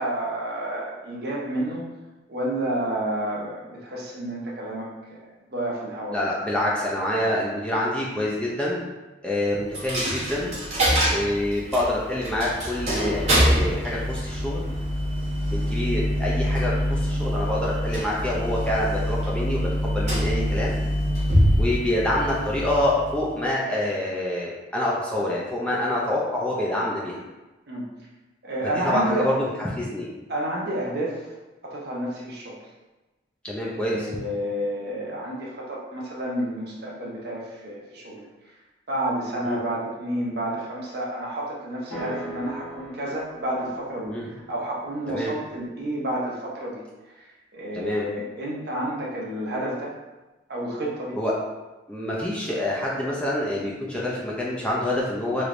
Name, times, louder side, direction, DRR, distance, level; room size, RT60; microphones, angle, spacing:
voice 1, 0.0-1.8 2.3-5.2 5.5-6.2 27.7-27.9 28.4-29.3 30.3-31.3 31.6-32.6 33.6-38.3 38.9-44.1 44.5-46.8 47.2-49.9 50.5-51.2, right 1 dB, 55° right, -3 dB, 0.7 m, -30 dB
voice 2, 6.0-8.8 9.2-10.5 11.1-14.6 15.5-20.8 21.6-27.2 28.8-30.1 33.4-34.1 39.4-39.6 44.1-44.3 45.1-45.3 47.7-48.1 51.2-51.3 51.9-55.4, left 1 dB, 5° left, -5 dB, 0.4 m, -26 dB
Coin (dropping), 9.7-23.5, equal, 35° right, 1.1 m, -25 dB
sound 1, 41.9-46.0, right 1 dB, 75° left, 1.2 m, -41 dB
3.2 x 3.0 x 2.5 m, 1.1 s
head